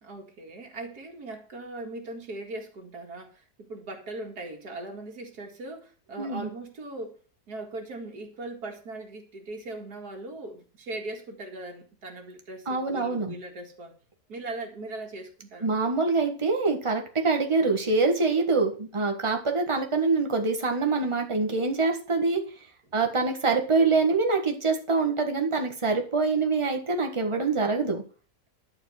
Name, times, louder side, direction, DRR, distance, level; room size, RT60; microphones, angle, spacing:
voice 1, 0.0-7.2 7.5-13.9 14.3-15.7, right 2 dB, 85° right, 2 dB, 2.6 m, -39 dB
voice 2, 6.2-6.5 12.7-13.3 15.6-22.4 22.9-28.0, right 3 dB, 20° right, 3 dB, 1.5 m, -25 dB
11.5 x 4.7 x 7.6 m, 0.39 s
omnidirectional pair, 1.6 m